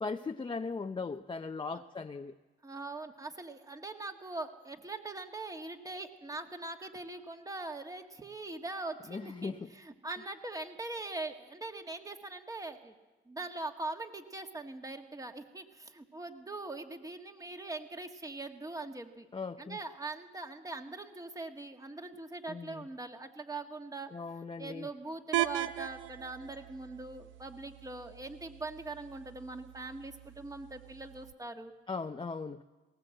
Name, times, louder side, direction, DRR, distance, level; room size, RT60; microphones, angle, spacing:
voice 1, 0.0-2.3 9.1-9.7 19.3-19.8 22.5-22.8 24.1-24.9 31.9-32.6, left 4 dB, 25° left, 4 dB, 0.7 m, -38 dB
voice 2, 2.6-12.9 13.3-19.3 19.6-24.1 24.6-31.7, right 2 dB, 15° right, 5 dB, 1.8 m, -42 dB
sound 1, 25.3-31.3, right 14 dB, 75° right, 0.7 m, -39 dB
19.0 x 18.5 x 7.8 m, 1.2 s
cardioid pair, 90°, 20 cm